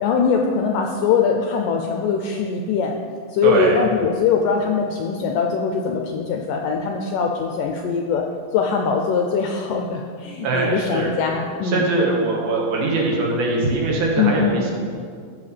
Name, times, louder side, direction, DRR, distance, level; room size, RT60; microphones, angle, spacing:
voice 1, 0.0-3.0 3.3-8.3 8.5-11.9 14.2-14.6, left 5 dB, 85° left, 3 dB, 1.9 m, -22 dB
voice 2, 3.4-3.8 10.4-11.1 11.6-14.7, right 2 dB, 75° right, -2 dB, 3.3 m, -21 dB
15.5 x 7.3 x 3.3 m, 2.2 s
omnidirectional pair, 4.4 m